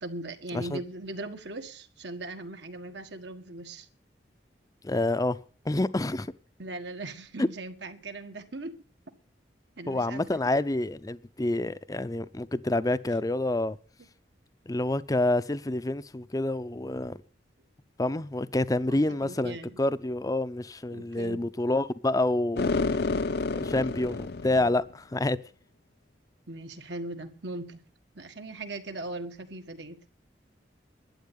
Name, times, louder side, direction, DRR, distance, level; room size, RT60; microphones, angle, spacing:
voice 1, 0.0-3.9 6.6-8.7 9.8-10.4 18.9-19.8 20.9-21.5 26.5-27.8 28.1-30.1, right 2 dB, 75° right, 1.7 m, -39 dB
voice 2, 4.8-5.4 5.6-6.3 7.4-7.5 9.9-13.8 14.7-17.2 18.0-22.7 23.5-25.4, left 2 dB, 20° left, 0.5 m, -28 dB
sound 1, 22.6-24.9, left 3 dB, 60° left, 0.7 m, -29 dB
12.0 x 8.4 x 8.4 m
head